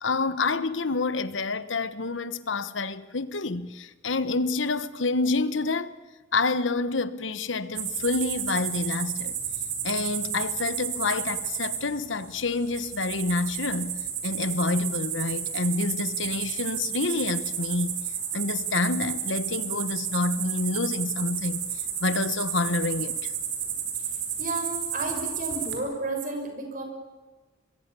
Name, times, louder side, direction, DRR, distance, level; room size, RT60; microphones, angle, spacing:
voice 1, 0.0-5.9 6.3-9.3 9.8-17.9 18.3-23.3, left 3 dB, 85° left, 1.3 m, -28 dB
sound 1, 7.7-25.7, right 8 dB, 85° right, 5.0 m, -32 dB
voice 2, 24.4-26.8, right 2 dB, 45° right, 6.0 m, -32 dB
26.0 x 22.5 x 7.0 m
head